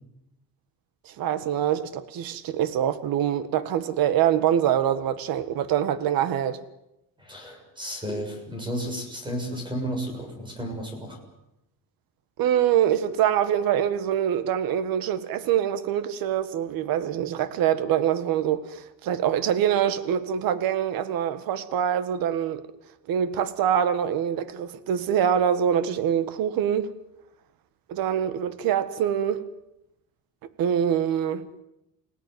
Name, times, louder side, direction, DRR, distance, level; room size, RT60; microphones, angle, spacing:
voice 1, 1.0-6.6 12.4-22.6 23.1-26.9 27.9-29.4 30.6-31.4, right 9 dB, 70° right, 1.7 m, -24 dB
voice 2, 7.2-11.2, equal, 15° right, 7.0 m, -33 dB
30.0 x 18.0 x 9.6 m
cardioid pair, 160°, 36 cm